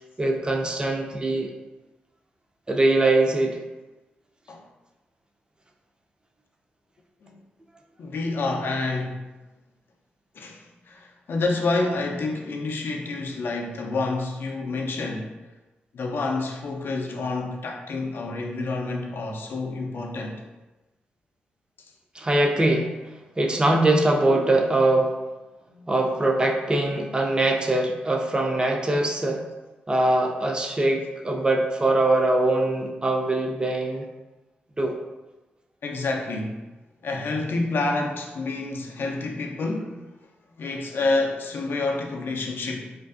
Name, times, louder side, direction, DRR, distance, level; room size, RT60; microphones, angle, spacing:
voice 1, 0.2-1.5 2.7-3.6 22.1-22.9 23.4-25.2 25.9-29.4 29.9-34.1 34.8-35.0, right 2 dB, 20° right, 2 dB, 0.4 m, -22 dB
voice 2, 8.0-9.2 10.3-15.3 15.9-20.4 25.7-25.9 26.9-27.0 35.8-36.7 37.0-40.0 40.6-43.0, left 3 dB, 65° left, 2 dB, 0.4 m, -28 dB
2.5 x 2.3 x 2.4 m, 1.1 s
supercardioid pair, 50°, 4 cm